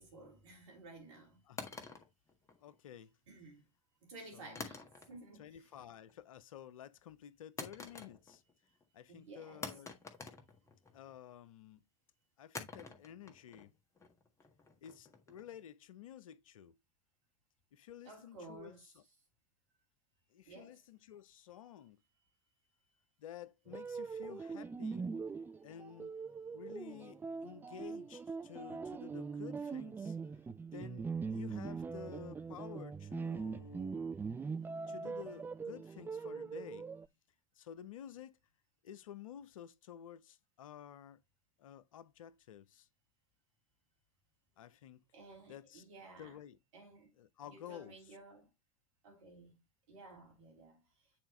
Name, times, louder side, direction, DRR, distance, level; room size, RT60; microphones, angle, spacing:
voice 1, 0.0-1.4 3.3-3.7 4.0-5.8 9.1-9.8 18.0-19.1 20.5-20.8 45.1-46.4 46.7-47.1 47.4-48.5 49.0-49.6 49.9-50.8, right 3 dB, 65° right, 3.5 m, -54 dB
voice 2, 1.5-1.8 2.6-3.1 4.3-4.7 5.4-8.4 8.9-10.0 10.9-11.8 12.4-13.7 14.8-16.8 17.7-19.0 20.3-22.0 23.2-25.0 25.6-26.2 26.5-30.2 30.7-34.0 34.9-36.9 37.6-38.4 38.8-41.2 41.6-42.9 44.6-45.0 45.4-45.8 46.2-46.6 47.2-48.1, left 10 dB, 65° left, 0.7 m, -52 dB
sound 1, 1.6-3.0 4.6-5.4 5.7-6.2 7.6-8.5 8.8-8.9 9.6-11.1 12.5-15.6, left 4 dB, 15° left, 1.6 m, -48 dB
sound 2, 23.7-37.1, right 5 dB, 10° right, 0.3 m, -42 dB
8.8 x 4.4 x 3.1 m
figure-of-eight pair, 75°, 18 cm